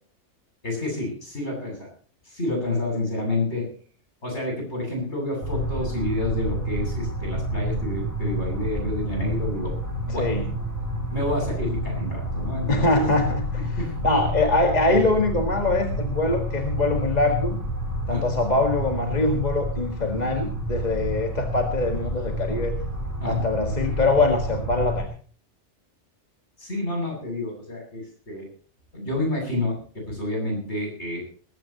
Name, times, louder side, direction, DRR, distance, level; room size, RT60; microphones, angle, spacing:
voice 1, 0.6-1.9 2.2-3.7 4.2-9.8 10.0-10.3 11.1-13.0 13.8-14.1 18.1-18.3 23.2-23.4 26.6-28.5 28.9-31.2, left 2 dB, 70° left, 1 dB, 8.4 m, -29 dB
sound 1, 5.4-25.0, equal, 15° left, 7.3 m, -29 dB
voice 2, 12.7-13.8 14.0-17.6 18.1-22.8 23.3-25.1, left 2 dB, 35° left, 4 dB, 2.0 m, -23 dB
19.5 x 16.5 x 3.0 m, 0.43 s
omnidirectional pair, 1.2 m